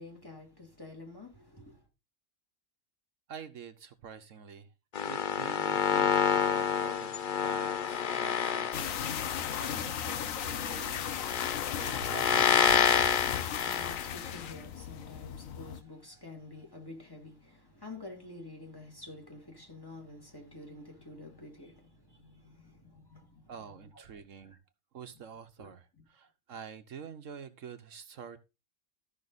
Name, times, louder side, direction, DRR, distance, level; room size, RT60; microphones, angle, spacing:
voice 1, 0.0-1.8 13.5-23.5 23.9-24.0 25.6-25.7 26.0-26.1, left 2 dB, 15° left, 2.3 m, -49 dB
voice 2, 3.3-4.7 5.0-7.1 7.4-13.2 23.5-24.6 24.9-28.4, right 7 dB, 70° right, 1.2 m, -47 dB
sound 1, 4.9-14.5, left 7 dB, 50° left, 0.7 m, -29 dB
sound 2, 8.7-15.8, left 9 dB, 80° left, 1.1 m, -36 dB
14.0 x 5.8 x 4.0 m
omnidirectional pair, 1.4 m